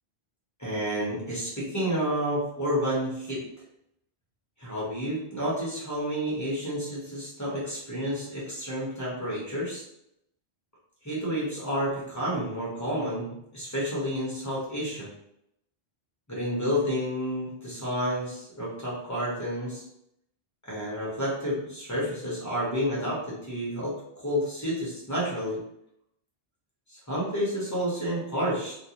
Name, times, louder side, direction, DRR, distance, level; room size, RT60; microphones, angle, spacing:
voice 1, 0.6-3.4 4.6-9.8 11.0-15.1 16.3-19.8 20.6-23.9 24.2-25.6 26.9-28.7, equal, 20° left, -7 dB, 0.8 m, -30 dB
2.4 x 2.4 x 2.8 m, 0.79 s
omnidirectional pair, 1.1 m